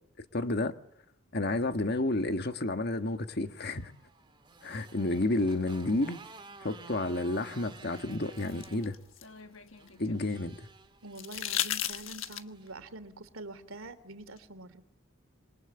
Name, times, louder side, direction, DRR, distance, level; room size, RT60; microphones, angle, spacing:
voice 1, 0.2-0.7 1.3-3.9 4.6-6.2 6.6-9.0 10.0-10.6, left 2 dB, 50° left, 1.6 m, -30 dB
Motorcycle, 3.4-12.8, right 3 dB, 25° right, 2.4 m, -53 dB
sound 1, 8.0-10.2 11.1-12.7 14.4-14.5, left 11 dB, 70° left, 1.3 m, -36 dB
voice 2, 11.0-14.8, right 2 dB, 80° right, 2.8 m, -45 dB
27.0 x 24.0 x 8.8 m
head